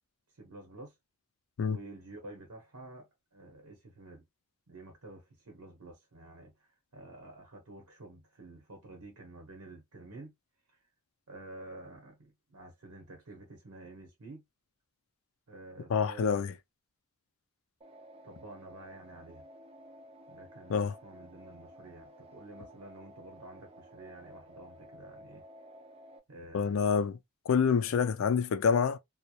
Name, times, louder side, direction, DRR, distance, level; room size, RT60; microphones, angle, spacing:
voice 1, 0.4-0.9 1.7-4.2 4.7-10.3 11.3-14.4 15.5-16.4 18.2-19.5 20.3-25.4 26.3-26.9 27.8-28.0, right 2 dB, 90° right, 0.8 m, -50 dB
voice 2, 15.9-16.5 20.7-20.9 26.5-27.2 27.5-29.0, left 6 dB, 65° left, 0.3 m, -27 dB
sound 1, 17.8-26.2, equal, 25° right, 0.3 m, -54 dB
2.2 x 2.0 x 2.8 m
head